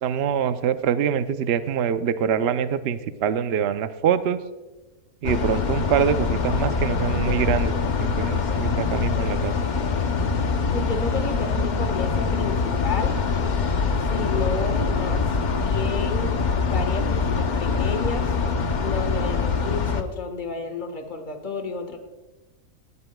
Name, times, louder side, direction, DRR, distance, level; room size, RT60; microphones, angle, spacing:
voice 1, 0.0-4.4 5.2-7.7 8.0-9.5, right 8 dB, 65° right, 11 dB, 0.7 m, -24 dB
sound 1, 5.2-20.0, left 5 dB, 50° left, 0.6 m, -24 dB
voice 2, 10.7-13.2 14.1-16.3 16.6-18.4 18.8-22.0, left 3 dB, 30° left, 5 dB, 1.4 m, -32 dB
18.0 x 12.5 x 2.2 m, 1.1 s
omnidirectional pair, 1.6 m